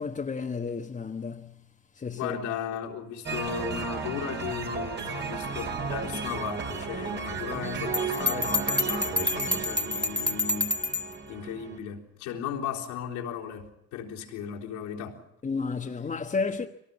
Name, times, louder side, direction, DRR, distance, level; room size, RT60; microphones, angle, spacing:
voice 1, 0.0-1.6 1.9-2.4 15.4-16.7, left 4 dB, 25° left, 1.4 m, -32 dB
voice 2, 2.2-10.8 11.3-15.2, left 8 dB, 85° left, 3.9 m, -36 dB
sound 1, 3.3-11.8, right 4 dB, 40° right, 2.9 m, -34 dB
Bell, 7.9-11.1, left 2 dB, 5° left, 1.2 m, -28 dB
23.5 x 18.5 x 8.5 m
supercardioid pair, 90°, 29 cm